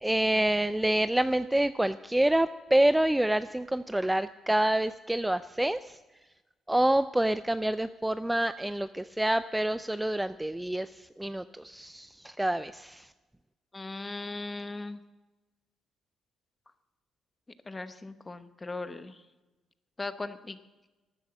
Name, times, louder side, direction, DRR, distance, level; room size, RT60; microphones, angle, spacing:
voice 1, 0.0-5.8 6.7-13.1, right 1 dB, 10° right, 13 dB, 0.4 m, -27 dB
voice 2, 13.7-15.0 17.7-19.2 20.0-20.6, left 3 dB, 20° left, 11 dB, 0.9 m, -38 dB
13.0 x 9.7 x 7.5 m, 1.2 s
cardioid pair, 90°, 0 cm